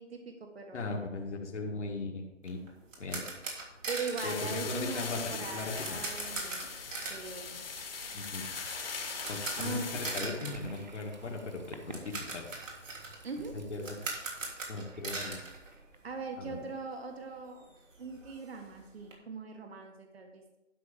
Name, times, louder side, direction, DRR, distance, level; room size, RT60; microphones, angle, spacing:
voice 1, 0.0-1.0 3.9-6.7 7.0-7.6 9.6-10.6 13.2-13.6 16.0-17.7 18.0-20.6, right 4 dB, 55° right, 4 dB, 1.5 m, -41 dB
voice 2, 0.7-2.7 3.0-3.3 4.2-5.2 5.5-6.0 8.1-8.5 9.3-12.5 13.5-14.0 14.7-15.4 16.4-16.6, left 3 dB, 65° left, -1 dB, 1.8 m, -38 dB
sound 1, 2.4-16.4 16.7-16.8 17.2-17.3 17.6-19.1, right 3 dB, 90° right, 3.2 m, -42 dB
sound 2, 4.2-10.2, left 5 dB, 50° left, 1.5 m, -40 dB
Toilet flush, 9.9-16.5, right 2 dB, 35° right, 0.8 m, -52 dB
11.5 x 5.8 x 5.0 m, 0.99 s
hypercardioid pair, 180°, 37 cm